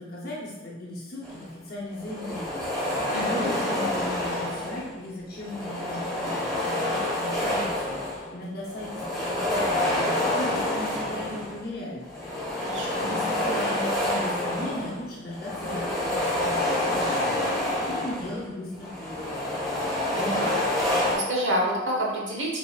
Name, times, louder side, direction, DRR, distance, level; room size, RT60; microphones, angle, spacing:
voice 1, 0.0-3.0 3.2-12.0 13.0-17.4 17.9-19.4, left 1 dB, 50° left, -5 dB, 0.7 m, -37 dB
sound 1, 1.2-1.5 1.9-5.0 5.3-8.4 8.7-11.6 12.0-18.4 18.7-21.1, left 1 dB, ahead, 1.2 m, -28 dB
voice 2, 3.1-3.5 12.6-13.1 20.2-20.6 21.0-22.6, right 1 dB, 75° right, -2 dB, 1.0 m, -28 dB
4.4 x 3.4 x 2.3 m, 1.1 s
head